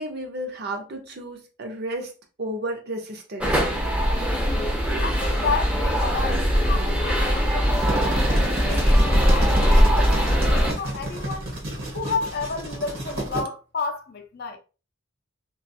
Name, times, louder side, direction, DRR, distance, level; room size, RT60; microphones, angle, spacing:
voice 1, 0.0-2.1 2.4-3.6, right 1 dB, 50° right, 0.6 m, -32 dB
sound 1, 3.4-10.7, equal, 5° right, 0.5 m, -21 dB
voice 2, 5.0-11.5 11.9-14.6, left 4 dB, 50° left, 0.4 m, -32 dB
sound 2, 7.8-13.4, right 1 dB, 75° right, 1.1 m, -31 dB
2.4 x 2.3 x 2.6 m
head